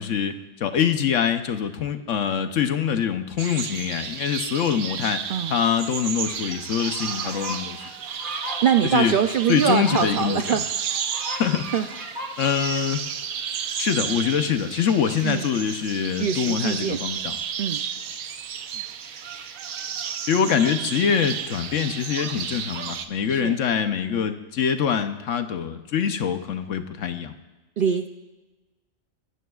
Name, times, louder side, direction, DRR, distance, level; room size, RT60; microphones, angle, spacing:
voice 1, 0.0-5.2 5.5-7.8 8.9-9.1 9.5-10.6 11.4-11.7 12.4-13.1 13.8-17.4 18.7-18.8 20.3-27.3, left 7 dB, 70° left, 8 dB, 1.1 m, -24 dB
sound 1, 3.4-23.1, right 8 dB, 90° right, 1.2 m, -32 dB
sound 2, 6.3-6.4 6.7-12.3, equal, 40° right, 1.8 m, -37 dB
voice 2, 8.6-10.6 11.7-11.9 15.2-15.4 16.2-17.0 17.6-17.8 23.3-23.6 27.8-28.1, right 8 dB, 65° right, 7 dB, 0.5 m, -23 dB
23.0 x 13.0 x 2.4 m, 1.2 s
omnidirectional pair, 1.4 m